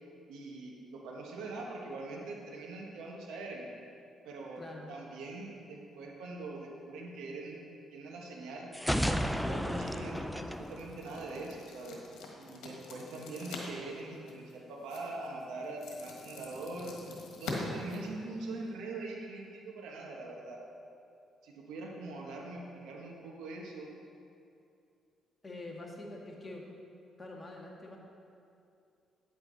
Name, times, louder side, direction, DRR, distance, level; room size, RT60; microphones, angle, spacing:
voice 1, 0.3-3.7 4.2-8.7 9.5-12.0 12.4-17.0 17.4-20.6 21.4-23.9, right 2 dB, 90° right, -1 dB, 1.4 m, -42 dB
voice 2, 4.6-4.9 25.4-26.7 27.2-28.0, left 2 dB, 25° left, -1 dB, 1.6 m, -45 dB
sound 1, 8.7-11.6, equal, ahead, 0.4 m, -33 dB
sound 2, 9.7-18.7, left 3 dB, 85° left, 1.5 m, -46 dB
9.5 x 8.0 x 4.0 m, 2.6 s
cardioid pair, 90°, 0 cm